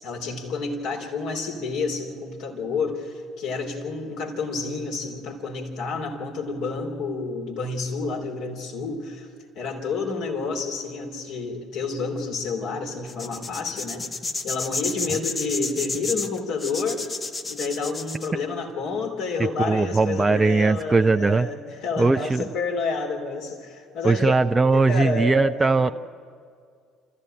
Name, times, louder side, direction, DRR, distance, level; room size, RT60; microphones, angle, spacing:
voice 1, 0.0-9.3 9.5-14.0 14.4-17.0 17.5-24.3 24.7-25.9, left 4 dB, 60° left, 0 dB, 3.2 m, -29 dB
sound 1, 13.1-18.3, left 3 dB, 30° left, 1.2 m, -31 dB
voice 2, 19.4-21.5 22.0-22.5 24.0-25.9, right 3 dB, 20° right, 8 dB, 0.5 m, -20 dB
27.5 x 14.5 x 8.8 m, 2.2 s
figure-of-eight pair, 55°, 0 cm